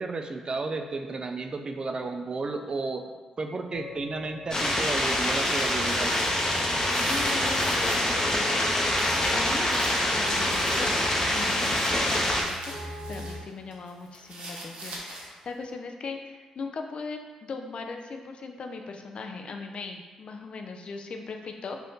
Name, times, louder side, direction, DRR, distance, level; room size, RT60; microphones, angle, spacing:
voice 1, 0.0-3.0 3.4-6.1, right 3 dB, 45° right, 5 dB, 0.3 m, -33 dB
sound 1, 3.7-13.4, right 1 dB, 80° left, 0.7 m, -41 dB
sound 2, 4.5-12.4, left 1 dB, 30° left, 0.7 m, -25 dB
sound 3, 5.0-8.1 8.5-13.4 13.7-15.5, right 2 dB, 60° right, 0.7 m, -44 dB
voice 2, 7.0-11.0 11.3-21.8, left 4 dB, 55° left, 4 dB, 0.3 m, -39 dB
2.5 x 2.5 x 3.5 m, 1.3 s
hypercardioid pair, 40°, 2 cm